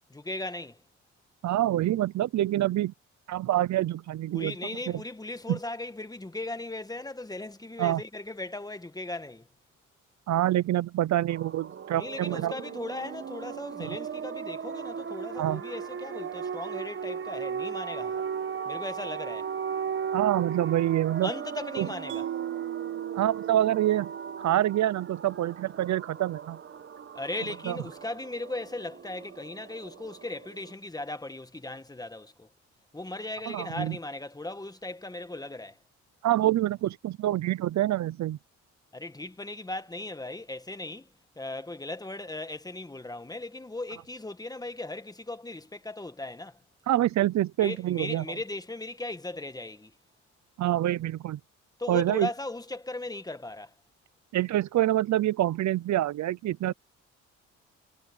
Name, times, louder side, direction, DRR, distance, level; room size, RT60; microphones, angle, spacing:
voice 1, 0.1-0.8 4.3-9.5 12.0-18.3 18.6-19.5 21.2-22.3 27.1-32.5 32.9-35.8 38.9-41.1 41.3-46.6 47.6-49.9 51.8-53.7, left 2 dB, 10° left, 1.5 m, -37 dB
voice 2, 1.4-2.9 3.3-4.5 4.9-5.0 5.5-5.6 7.8-8.0 10.3-12.5 13.8-13.9 15.4-15.6 20.1-21.3 21.8-21.9 23.1-24.1 24.4-26.6 27.7-27.8 33.5-34.0 36.2-38.4 46.9-48.2 50.6-51.4 51.9-52.3 54.3-56.7, right 13 dB, 65° right, 0.8 m, -26 dB
sound 1, 11.3-30.7, right 7 dB, 40° right, 1.3 m, -37 dB
Mallet percussion, 22.1-25.4, right 12 dB, 85° right, 1.3 m, -37 dB
cardioid pair, 90°, 30 cm